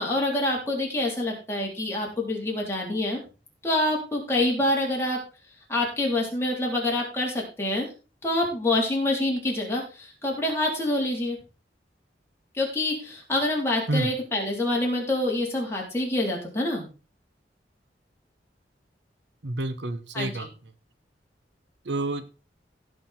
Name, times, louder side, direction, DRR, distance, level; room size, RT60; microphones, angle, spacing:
voice 1, 0.0-3.2 3.6-5.2 5.7-7.9 8.2-11.4 12.5-16.9 20.1-20.5, left 1 dB, 15° left, -2 dB, 3.7 m, -26 dB
voice 2, 19.4-20.5 21.9-22.3, right 2 dB, 80° right, 11 dB, 1.0 m, -28 dB
16.5 x 5.5 x 4.3 m, 0.34 s
head